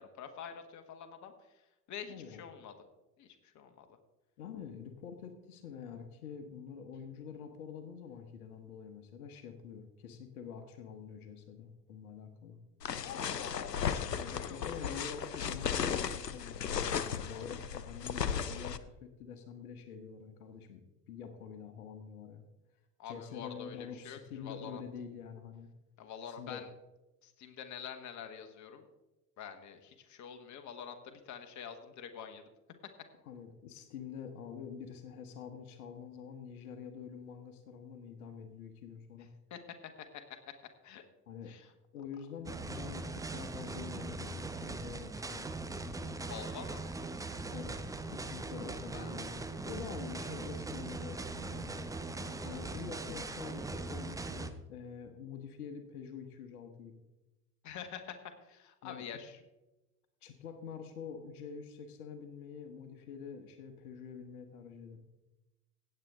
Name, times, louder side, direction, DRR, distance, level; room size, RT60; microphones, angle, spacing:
voice 1, 0.0-1.3 1.9-2.7 3.2-3.9 13.0-14.0 14.3-14.6 17.3-17.5 23.0-24.8 26.0-26.7 27.2-28.9 29.4-32.5 39.5-39.6 40.0-40.2 40.8-41.0 41.4-41.7 46.2-46.8 48.9-49.1 52.5-52.6 57.6-58.1 58.4-59.4, left 7 dB, 35° left, 7 dB, 1.5 m, -46 dB
voice 2, 2.1-2.4 4.4-12.6 14.2-20.8 21.1-22.4 23.0-25.7 26.3-26.7 33.3-39.3 41.3-41.6 41.9-45.5 47.5-51.9 52.4-57.0 58.8-59.1 60.2-65.0, left 7 dB, 65° left, 7 dB, 1.3 m, -46 dB
sound 1, 12.8-18.8, left 7 dB, 90° left, 0.6 m, -35 dB
sound 2, 42.5-54.5, right 3 dB, 5° right, 0.7 m, -40 dB
17.0 x 7.9 x 3.7 m, 1.0 s
figure-of-eight pair, 70°, 47 cm